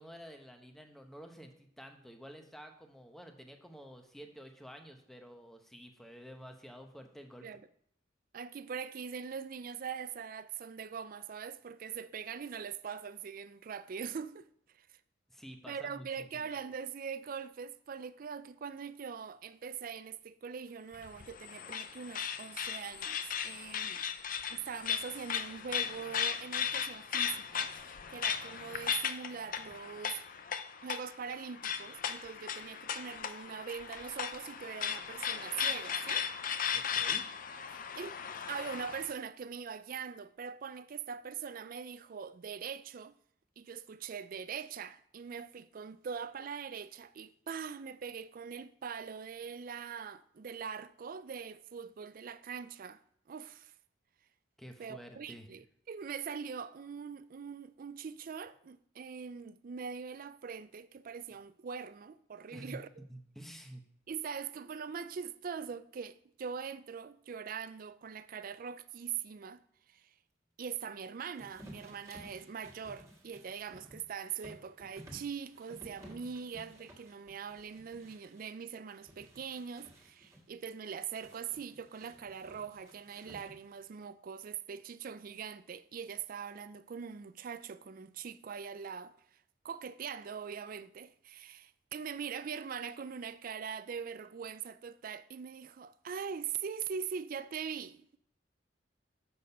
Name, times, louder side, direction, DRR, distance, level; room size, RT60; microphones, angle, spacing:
voice 1, 0.0-7.5 15.3-16.5 36.7-37.3 54.6-55.5 62.5-62.8 63.1-63.8, equal, ahead, 0.8 m, -50 dB
voice 2, 8.3-14.5 14.8-14.9 15.7-24.1 24.5-30.2 30.8-36.3 37.7-43.1 43.6-53.0 53.3-53.7 54.8-63.0 64.1-69.6 69.9-70.1 70.6-89.4 89.6-98.2, right 6 dB, 50° right, 0.4 m, -42 dB
sound 1, 20.9-39.1, left 8 dB, 45° left, 0.5 m, -37 dB
sound 2, 71.4-78.5 78.9-80.4 81.2-83.8, equal, 15° right, 1.8 m, -55 dB
6.9 x 6.3 x 5.5 m
head